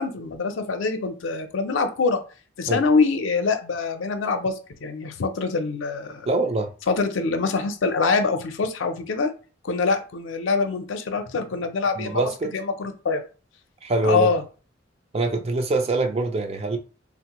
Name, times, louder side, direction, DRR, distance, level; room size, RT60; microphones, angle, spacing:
voice 1, 0.0-2.2 2.6-6.3 6.9-9.3 9.6-12.2 12.5-13.2 14.0-14.4, left 4 dB, 75° left, 0.5 m, -24 dB
voice 2, 6.3-6.7 12.0-12.6 13.8-14.3 15.1-16.8, right 2 dB, 30° right, 0.4 m, -24 dB
3.5 x 2.0 x 2.9 m
head